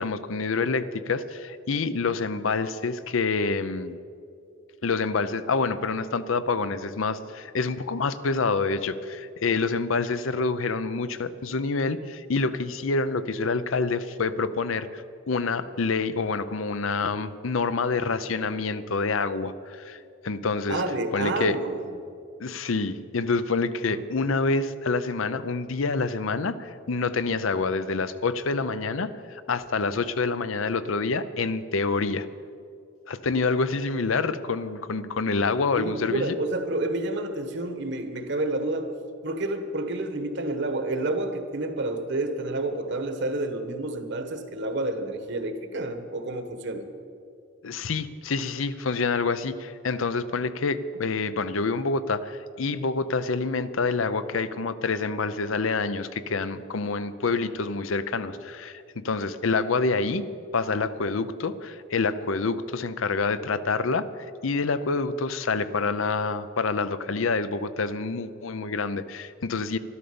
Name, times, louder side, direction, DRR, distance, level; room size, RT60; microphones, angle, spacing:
voice 1, 0.0-4.0 4.8-20.0 20.2-20.8 21.1-21.6 22.4-32.3 33.1-36.4 47.6-60.3 60.5-64.1 64.4-69.8, left 4 dB, 80° left, 13 dB, 0.6 m, -27 dB
voice 2, 20.7-21.8 23.9-24.0 35.8-38.9 39.2-46.8, right 2 dB, 60° right, 8 dB, 1.3 m, -29 dB
12.5 x 12.5 x 6.9 m, 2.5 s
head